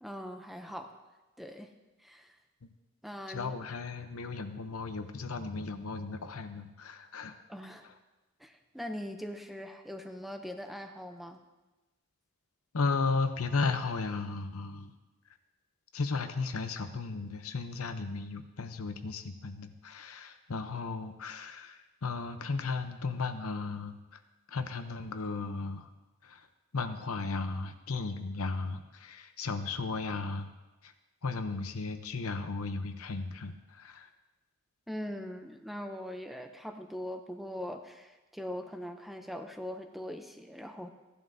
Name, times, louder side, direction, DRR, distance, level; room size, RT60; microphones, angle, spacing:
voice 1, 0.0-1.0 1.4-1.7 2.0-2.4 3.0-3.5 7.5-7.9 8.4-11.4 34.9-40.9, equal, ahead, 5 dB, 0.6 m, -41 dB
voice 2, 3.3-7.3 12.7-14.9 15.9-24.0 24.5-25.9 26.2-26.5 26.7-30.5 30.8-30.9 31.2-34.1, left 4 dB, 80° left, 8 dB, 0.8 m, -35 dB
15.0 x 11.0 x 2.7 m, 1.1 s
head